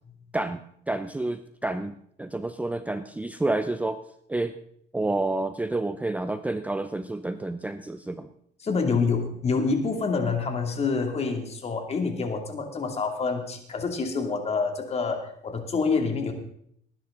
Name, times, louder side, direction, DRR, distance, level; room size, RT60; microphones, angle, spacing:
voice 1, 0.3-4.0 4.3-4.5 4.9-8.3, right 2 dB, 10° right, 10 dB, 0.6 m, -29 dB
voice 2, 8.6-16.3, left 4 dB, 40° left, 4 dB, 2.7 m, -27 dB
19.5 x 10.5 x 3.9 m, 0.68 s
cardioid pair, 110°, 17 cm